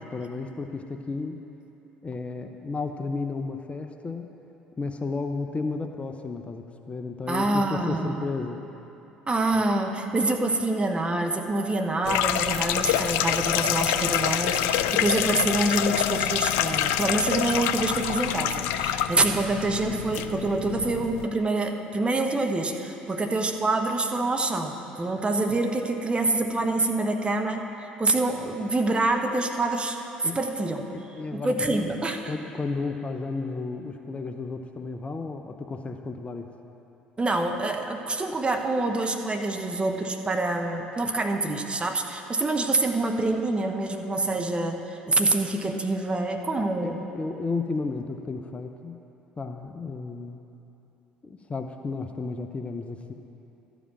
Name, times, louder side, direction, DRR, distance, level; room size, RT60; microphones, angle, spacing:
voice 1, 0.0-1.3 2.0-4.3 4.8-8.6 30.2-30.4 30.9-31.8 32.3-36.5 46.6-48.9 49.4-50.4 51.2-53.1, left 3 dB, 25° left, 5 dB, 0.7 m, -33 dB
voice 2, 7.3-8.3 9.3-27.7 28.0-30.0 30.2-30.8 31.3-32.3 37.2-47.0, right 2 dB, 25° right, 4 dB, 1.0 m, -26 dB
sound 1, 12.0-21.3, left 10 dB, 65° left, 0.4 m, -26 dB
12.5 x 5.1 x 8.8 m, 3.0 s
figure-of-eight pair, 55°, 5 cm